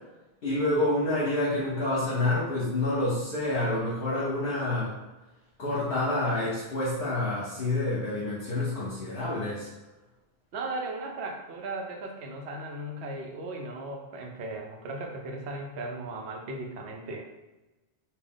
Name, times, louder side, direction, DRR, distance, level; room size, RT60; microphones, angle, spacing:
voice 1, 0.4-4.9 5.6-9.7, left 2 dB, 65° left, -7 dB, 1.1 m, -28 dB
voice 2, 10.5-17.3, right 2 dB, 80° right, 1 dB, 0.9 m, -37 dB
3.3 x 2.4 x 3.8 m, 1.1 s
omnidirectional pair, 1.1 m